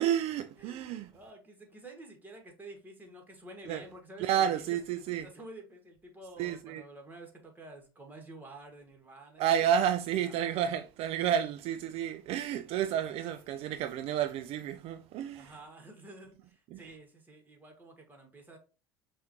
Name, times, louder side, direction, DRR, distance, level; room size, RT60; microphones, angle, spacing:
voice 1, 0.0-1.1 3.7-3.8 4.2-5.3 6.4-6.8 9.4-15.5 16.7-16.8, right 9 dB, 55° right, 0.4 m, -30 dB
voice 2, 0.6-9.4 9.8-10.9 15.3-18.6, right 2 dB, 15° right, 1.6 m, -50 dB
5.5 x 2.6 x 2.9 m
hypercardioid pair, 75°, 13 cm